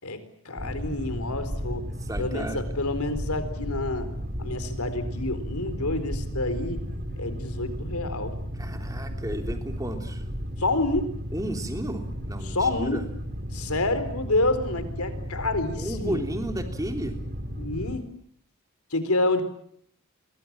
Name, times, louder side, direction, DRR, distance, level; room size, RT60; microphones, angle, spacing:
voice 1, 0.0-1.9 2.2-4.1 4.4-6.8 7.2-8.3 10.6-11.1 12.4-13.0 13.5-16.2 17.6-18.1 18.9-19.4, left 2 dB, 90° left, 11 dB, 4.2 m, -28 dB
Boat Water vehicle, 0.6-18.0, equal, 40° right, 4.0 m, -34 dB
voice 2, 2.0-2.6 8.6-10.2 11.3-13.0 15.8-17.2, right 1 dB, 15° right, 5 dB, 3.3 m, -33 dB
29.5 x 23.5 x 7.4 m, 0.66 s
head